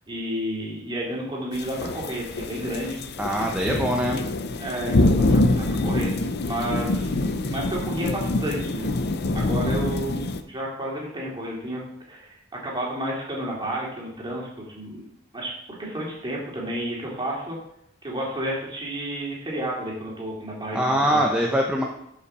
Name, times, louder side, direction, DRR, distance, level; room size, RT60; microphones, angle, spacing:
voice 1, 0.1-3.0 3.3-4.1 4.6-8.9 9.3-11.8 12.1-15.0 15.3-15.5 15.8-17.6 18.0-21.2, right 1 dB, 25° right, -3 dB, 2.7 m, -31 dB
sound 1, 1.5-10.4, left 2 dB, 55° left, 0.6 m, -25 dB
voice 2, 3.2-4.2 20.7-21.8, equal, 5° right, -1 dB, 0.8 m, -23 dB
11.5 x 5.7 x 4.2 m, 0.75 s
head